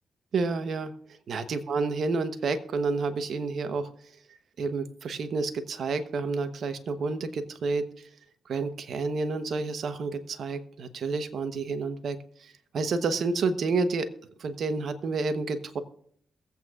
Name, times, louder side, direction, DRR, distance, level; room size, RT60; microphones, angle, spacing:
voice 1, 0.3-0.9 1.3-3.9 4.6-7.9 8.5-14.1 14.4-15.8, right 4 dB, 65° right, 9 dB, 1.0 m, -29 dB
22.5 x 8.2 x 2.5 m, 0.66 s
cardioid pair, 65°, 0 cm